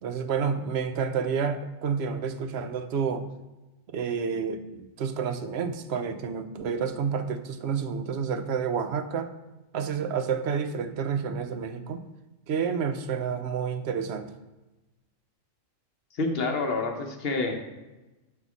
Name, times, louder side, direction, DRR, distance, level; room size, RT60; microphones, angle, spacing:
voice 1, 0.0-3.3 3.9-9.3 9.7-12.0 12.5-14.3, right 6 dB, 65° right, 10 dB, 0.8 m, -29 dB
voice 2, 16.2-17.5, left 3 dB, 55° left, 3 dB, 1.0 m, -28 dB
5.6 x 4.0 x 6.0 m, 1.1 s
omnidirectional pair, 1.3 m